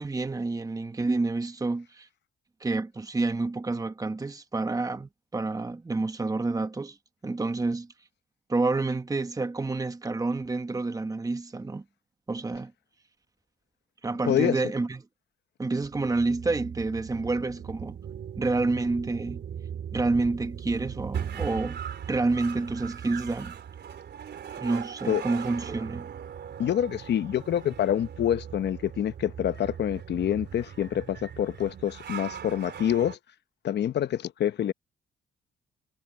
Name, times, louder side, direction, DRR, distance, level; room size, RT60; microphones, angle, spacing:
voice 1, 0.0-2.1 2.6-7.0 7.2-7.9 8.5-11.8 12.3-12.7 14.0-15.0 15.6-18.0 18.4-19.4 19.9-21.8 22.1-23.5 24.6-26.1, right 3 dB, 20° right, 1.3 m, -28 dB
voice 2, 14.2-14.6 25.1-25.2 26.6-33.2 33.6-34.7, left 10 dB, 60° left, 0.9 m, -27 dB
sound 1, 15.8-33.2, right 8 dB, 60° right, 3.7 m, -39 dB
cardioid pair, 90°, 20 cm